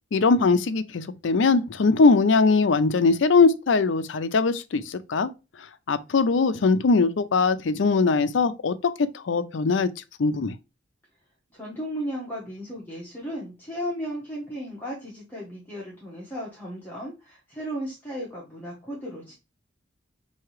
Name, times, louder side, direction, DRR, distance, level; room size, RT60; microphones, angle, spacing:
voice 1, 0.1-5.3 5.9-8.7 9.1-9.9 10.2-10.5, left 4 dB, 75° left, 0.5 m, -21 dB
voice 2, 11.5-19.3, equal, 10° left, 1.2 m, -35 dB
5.7 x 2.8 x 3.1 m
head